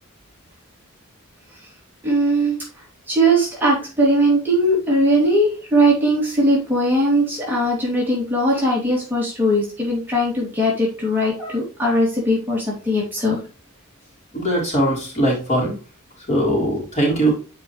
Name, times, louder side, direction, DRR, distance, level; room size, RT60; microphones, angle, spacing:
voice 1, 2.0-2.5 3.1-13.4, right 1 dB, 10° right, -5 dB, 2.5 m, -19 dB
voice 2, 14.3-15.7 16.3-17.3, right 1 dB, 30° left, -3 dB, 3.6 m, -20 dB
9.3 x 4.8 x 3.1 m, 0.34 s
head